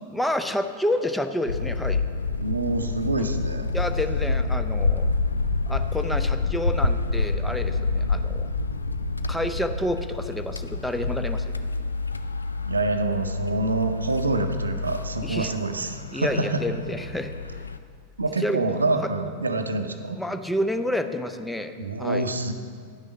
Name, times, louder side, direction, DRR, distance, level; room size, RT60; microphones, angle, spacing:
voice 1, 0.1-2.1 3.7-5.1 5.7-8.5 9.3-11.4 15.2-15.5 16.1-17.3 18.4-18.6 20.1-21.7 22.0-22.3, left 1 dB, 5° left, 7 dB, 0.5 m, -29 dB
sound 1, 1.5-17.8, left 3 dB, 80° left, 0.4 m, -28 dB
voice 2, 2.4-3.7 12.7-16.6 18.2-20.2 21.8-22.5, right 3 dB, 75° right, 7 dB, 0.6 m, -26 dB
10.5 x 6.4 x 5.1 m, 2.1 s
figure-of-eight pair, 90°, 0 cm